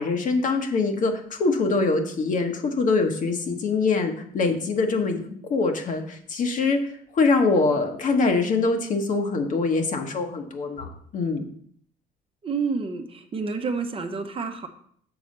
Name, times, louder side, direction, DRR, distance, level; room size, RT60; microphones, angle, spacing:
voice 1, 0.0-5.2 5.5-6.8 7.1-11.4, left 3 dB, 50° left, 4 dB, 1.3 m, -23 dB
voice 2, 12.4-14.7, right 4 dB, 35° right, 6 dB, 0.9 m, -29 dB
7.1 x 4.1 x 6.6 m, 0.63 s
cardioid pair, 110°, 17 cm